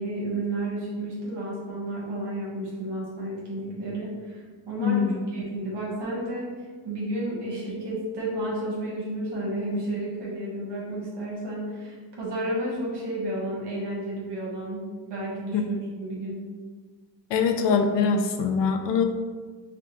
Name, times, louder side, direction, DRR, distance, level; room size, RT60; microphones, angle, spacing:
voice 1, 0.0-6.5 6.8-16.4, right 1 dB, 75° right, -5 dB, 1.2 m, -32 dB
voice 2, 4.8-5.2 15.5-15.6 17.3-19.0, left 5 dB, 90° left, 5 dB, 0.6 m, -23 dB
4.9 x 2.2 x 3.0 m, 1.4 s
cardioid pair, 130°, 42 cm